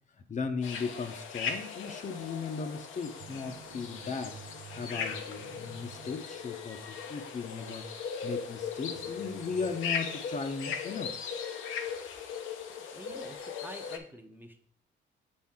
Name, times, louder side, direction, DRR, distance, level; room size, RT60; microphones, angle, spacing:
voice 1, 0.3-4.4 4.8-11.2, left 5 dB, 40° left, 6 dB, 0.7 m, -37 dB
sound 1, 0.6-14.0, left 6 dB, 80° left, 0.8 m, -38 dB
sound 2, 3.2-7.0 7.2-7.3 8.9-9.8, right 9 dB, 50° right, 0.4 m, -51 dB
voice 2, 12.8-14.7, equal, 10° right, 4 dB, 0.7 m, -48 dB
6.9 x 4.4 x 3.6 m, 0.63 s
cardioid pair, 90°, 20 cm